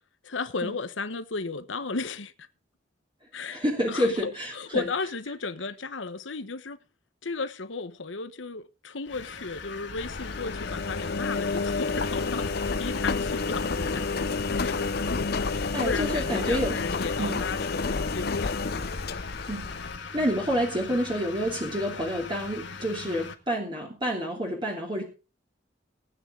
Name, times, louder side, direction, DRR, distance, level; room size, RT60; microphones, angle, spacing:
voice 1, 0.2-2.3 3.3-6.8 7.2-14.1 14.5-14.7 15.4-18.6, left 4 dB, 90° left, 1.2 m, -34 dB
voice 2, 3.5-4.9 15.7-16.8 17.2-17.4 19.5-19.7 20.0-25.0, equal, 25° right, 3.0 m, -28 dB
sound 1, 9.1-23.3, left 4 dB, 75° left, 1.9 m, -40 dB
Engine, 10.0-20.0, left 4 dB, 55° left, 0.8 m, -30 dB
19.0 x 9.3 x 3.9 m
head